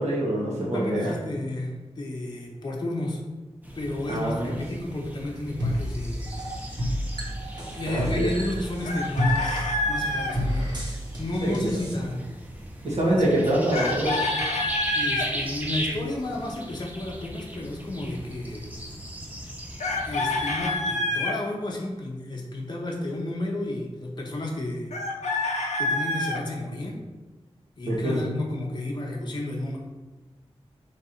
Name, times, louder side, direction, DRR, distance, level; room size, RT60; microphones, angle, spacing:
voice 1, 0.0-1.2 4.1-4.5 7.9-8.3 11.4-11.7 12.8-14.2 27.8-28.3, right 1 dB, 80° right, -4 dB, 1.0 m, -25 dB
voice 2, 0.6-3.2 3.7-6.3 7.7-10.7 11.2-12.3 13.1-13.5 14.9-18.7 20.0-25.0 25.8-27.0 27.8-29.8, left 1 dB, 40° left, -1 dB, 0.6 m, -32 dB
sound 1, 3.6-20.8, right 1 dB, 15° right, 0.7 m, -38 dB
sound 2, 5.6-11.9, equal, 40° right, 1.0 m, -30 dB
Chicken rooster, 8.8-10.3 13.7-15.3 19.8-21.4 24.9-26.4, left 2 dB, 85° left, 0.4 m, -27 dB
3.2 x 2.5 x 4.2 m, 1.2 s
wide cardioid pair, 65°, 11 cm